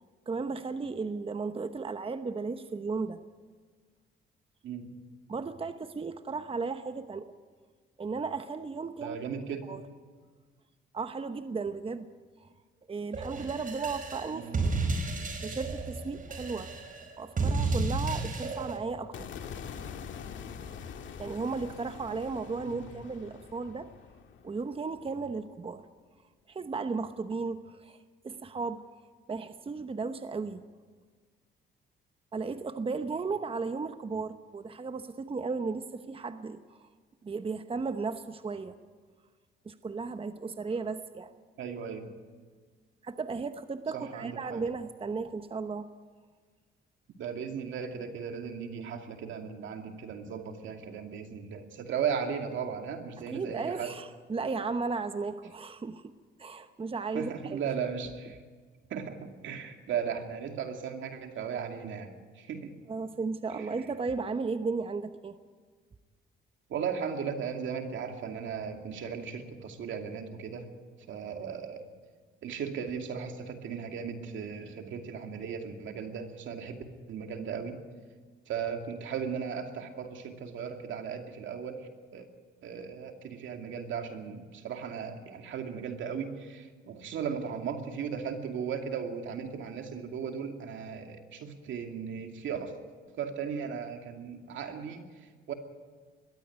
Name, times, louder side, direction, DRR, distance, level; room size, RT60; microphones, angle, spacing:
voice 1, 0.3-3.2 5.3-7.3 8.0-9.2 9.6-9.8 10.9-12.1 12.4-12.5 12.9-14.5 15.4-16.7 17.2-19.3 21.2-23.9 24.4-25.8 26.5-28.0 28.2-28.8 29.3-30.6 32.3-36.9 37.2-38.8 39.6-41.3 43.0-45.9 53.2-56.1 56.4-57.6 62.9-65.4, right 4 dB, 30° right, 9 dB, 0.9 m, -35 dB
voice 2, 9.0-9.7 14.3-14.6 22.6-22.9 41.6-42.1 43.9-44.6 47.2-53.9 57.1-58.4 58.9-62.8 63.5-63.7 66.7-70.7 71.1-71.8 72.4-77.8 78.5-82.3 82.6-92.7 93.1-95.5, right 7 dB, 75° right, 4 dB, 2.5 m, -36 dB
sound 1, 13.1-18.8, right 3 dB, 45° right, 4.7 m, -32 dB
sound 2, 19.1-25.4, left 7 dB, 70° left, 2.0 m, -44 dB
21.5 x 15.0 x 9.3 m, 1.5 s
cardioid pair, 90°, 20 cm